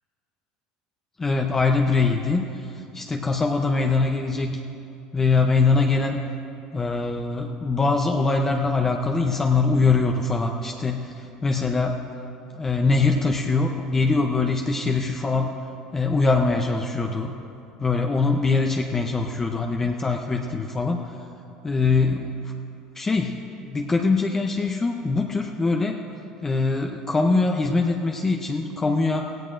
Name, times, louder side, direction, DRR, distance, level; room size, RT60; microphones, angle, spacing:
voice 1, 1.2-4.6 5.1-6.2 6.7-12.1 12.5-15.5 15.9-17.3 17.8-21.2 21.6-22.5 22.9-26.0 26.4-29.4, left 3 dB, 20° left, 2 dB, 0.7 m, -23 dB
17.0 x 16.0 x 2.6 m, 2.7 s
supercardioid pair, 110°, 2 cm